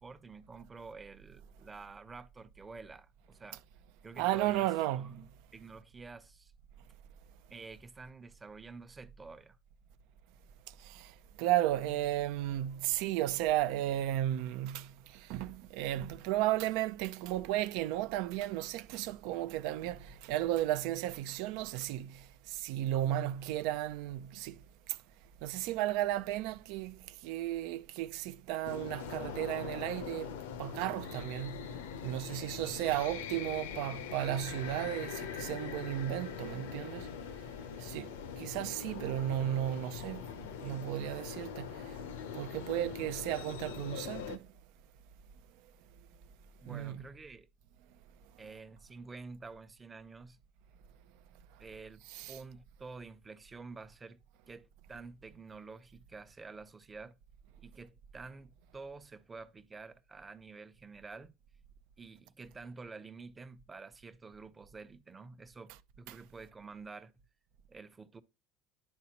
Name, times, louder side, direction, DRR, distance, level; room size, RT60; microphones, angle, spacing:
voice 1, 0.0-3.6 4.0-4.7 5.0-6.5 7.5-9.6 32.3-32.7 46.6-47.5 48.4-50.4 51.6-52.0 52.3-54.2 54.5-57.1 57.6-61.3 62.0-67.1 67.7-68.2, right 4 dB, 25° right, 0.8 m, -49 dB
voice 2, 4.2-5.2 10.8-11.1 11.4-24.6 24.9-25.0 25.4-31.7 32.0-37.1 37.8-41.9 42.3-44.5 46.7-47.1 52.1-52.4 66.1-66.2, right 13 dB, 75° right, 0.5 m, -34 dB
sound 1, 28.6-44.4, left 7 dB, 90° left, 0.7 m, -42 dB
10.5 x 4.2 x 2.9 m
supercardioid pair, 80°, 0 cm